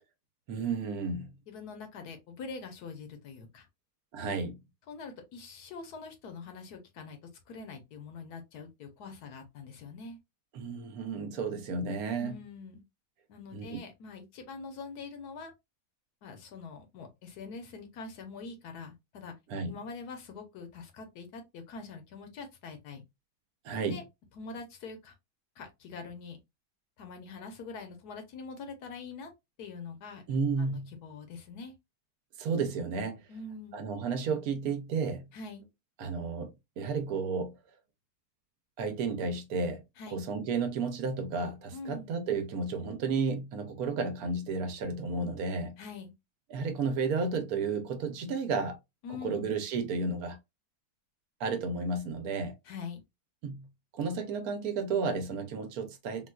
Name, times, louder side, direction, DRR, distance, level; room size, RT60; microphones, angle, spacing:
voice 1, 0.5-1.3 4.1-4.6 10.5-12.3 13.5-13.8 19.5-19.7 23.6-24.0 30.3-30.9 32.4-33.2 33.7-35.3 36.0-37.5 38.8-39.8 40.1-45.8 46.5-48.8 49.1-50.4 51.4-52.5 53.4-53.7 53.9-56.3, right 4 dB, 70° right, 1.1 m, -32 dB
voice 2, 1.5-3.7 4.9-7.2 7.5-10.2 12.2-12.8 13.3-15.5 16.2-19.3 19.7-23.0 23.9-24.0 24.3-25.1 25.6-26.4 27.0-29.3 29.6-30.2 30.6-31.8 33.3-33.8 35.3-35.6 40.0-40.2 41.7-42.1 45.8-46.1 49.0-49.5 52.6-53.0, left 4 dB, 75° left, 1.3 m, -44 dB
3.9 x 2.4 x 2.2 m
omnidirectional pair, 1.7 m